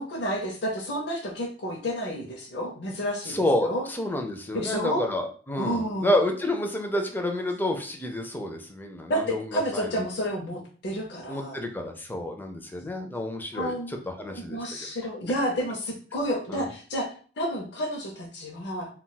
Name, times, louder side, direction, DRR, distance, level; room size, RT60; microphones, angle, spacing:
voice 1, 0.0-3.8 4.5-5.0 5.6-6.1 9.1-11.6 13.5-13.9 14.3-17.1 17.4-18.9, equal, 65° left, -2 dB, 0.6 m, -30 dB
voice 2, 3.2-10.1 11.3-14.9 16.5-16.7, left 1 dB, 10° left, 4 dB, 0.4 m, -29 dB
2.3 x 2.2 x 3.9 m, 0.42 s
head